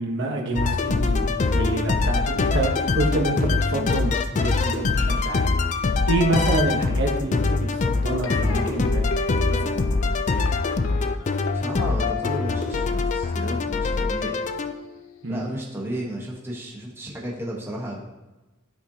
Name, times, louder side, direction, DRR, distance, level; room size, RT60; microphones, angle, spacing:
voice 1, 0.0-5.5 6.1-9.1 9.5-9.8 15.2-15.5, right 2 dB, 60° right, 1 dB, 1.2 m, -27 dB
sound 1, 0.6-14.7, left 3 dB, 35° left, 0.4 m, -23 dB
sound 2, 8.2-15.3, left 3 dB, 85° left, 0.5 m, -34 dB
voice 2, 8.4-8.8 11.5-14.4 15.3-18.0, equal, 10° right, -3 dB, 1.1 m, -33 dB
12.5 x 4.2 x 2.8 m, 1.1 s
head